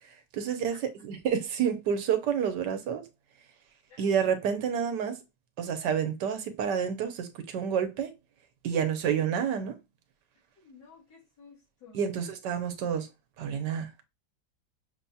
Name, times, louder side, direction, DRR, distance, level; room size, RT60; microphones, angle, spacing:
voice 1, 0.3-0.7 1.1-3.1 4.0-5.2 5.6-8.1 8.6-9.8 11.9-13.1 13.4-13.9, right 7 dB, 75° right, 1.4 m, -29 dB
voice 2, 10.6-12.2, left 5 dB, 80° left, 2.9 m, -54 dB
6.6 x 2.8 x 2.3 m
omnidirectional pair, 1.9 m